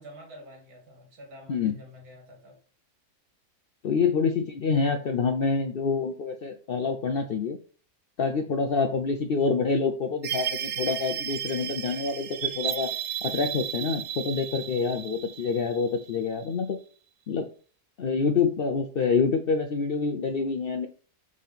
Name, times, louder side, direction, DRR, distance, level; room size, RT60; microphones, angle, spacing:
voice 1, 0.0-2.6 4.0-4.3, equal, 80° right, 1 dB, 2.4 m, -48 dB
voice 2, 3.8-7.6 8.2-12.9 13.2-16.8 17.3-17.5 18.0-20.9, left 5 dB, 65° left, 6 dB, 0.5 m, -27 dB
sound 1, 10.2-16.5, right 10 dB, 65° right, 0.7 m, -34 dB
5.2 x 3.7 x 5.8 m, 0.41 s
omnidirectional pair, 1.6 m